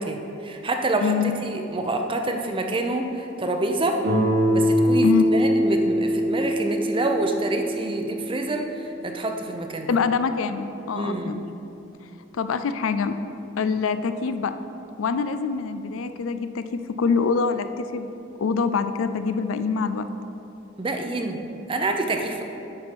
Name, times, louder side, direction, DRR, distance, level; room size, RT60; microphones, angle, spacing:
voice 1, 0.0-1.1 1.4-4.0 4.5-9.9 11.0-11.4 20.8-22.4, right 2 dB, 25° right, 4 dB, 0.6 m, -27 dB
voice 2, 1.0-1.4 5.0-5.3 9.9-11.4 12.3-13.2 13.6-14.5 15.0-18.1 18.4-20.0, left 5 dB, 90° left, 10 dB, 0.4 m, -25 dB
Guitar, 4.0-8.8, equal, 85° right, 2.1 m, -23 dB
9.6 x 4.3 x 6.0 m, 2.9 s
head